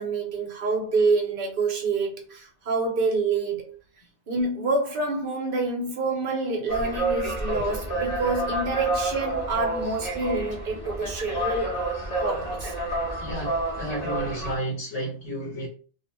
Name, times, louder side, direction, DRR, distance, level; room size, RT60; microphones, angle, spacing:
voice 1, 0.0-3.7 4.3-11.8 12.2-12.7, right 3 dB, 60° right, 0.8 m, -27 dB
sound 1, 6.7-14.6, right 2 dB, 40° left, 1.0 m, -29 dB
voice 2, 13.2-15.7, right 1 dB, 75° left, 1.1 m, -32 dB
2.6 x 2.1 x 2.9 m
omnidirectional pair, 1.1 m